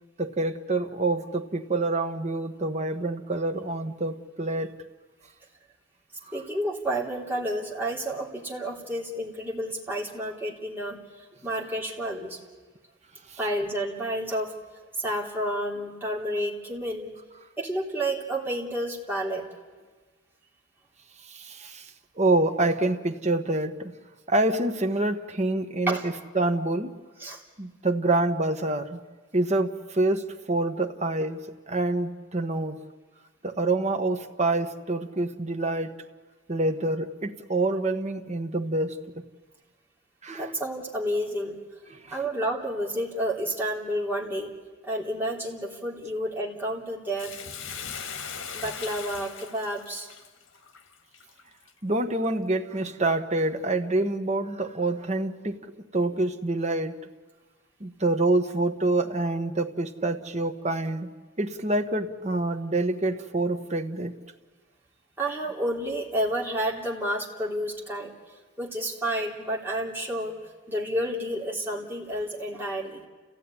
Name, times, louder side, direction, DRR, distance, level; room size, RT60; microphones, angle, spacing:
voice 1, 0.2-4.7 13.3-13.4 21.3-21.9 22.2-24.0 24.3-26.9 27.6-29.0 29.3-32.8 33.4-35.9 36.5-39.2 40.2-40.5 41.9-42.1 51.8-55.6 55.9-57.0 57.8-64.1, right 2 dB, 35° right, 6 dB, 1.4 m, -27 dB
voice 2, 6.3-11.0 11.4-12.4 13.4-14.5 14.9-17.1 17.6-19.5 25.9-26.1 27.2-27.4 40.3-41.6 42.1-44.5 44.8-47.3 47.8-48.0 48.5-50.1 65.2-68.1 68.6-70.4 70.7-73.0, right 1 dB, 10° right, -2 dB, 3.3 m, -30 dB
Bathtub (filling or washing), 47.2-51.7 52.2-52.3, left 7 dB, 80° left, 1.7 m, -39 dB
30.0 x 15.5 x 9.8 m, 1.4 s
head